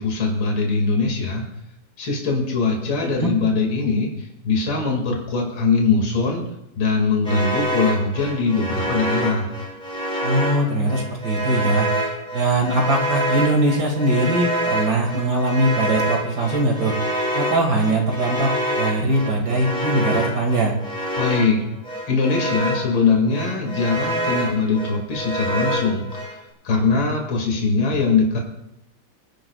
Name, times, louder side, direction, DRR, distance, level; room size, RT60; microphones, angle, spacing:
voice 1, 0.0-1.4 2.0-6.4 6.8-9.5 21.2-21.6 22.1-26.4 26.6-28.4, left 4 dB, 65° left, 0 dB, 3.0 m, -21 dB
voice 2, 3.0-3.3 10.2-11.9 12.3-16.9 17.3-20.7, right 1 dB, 55° right, 1 dB, 2.4 m, -21 dB
sound 1, 7.2-23.0 23.3-26.4, right 1 dB, 5° left, 3.3 m, -27 dB
25.0 x 10.5 x 2.4 m, 0.85 s
omnidirectional pair, 2.2 m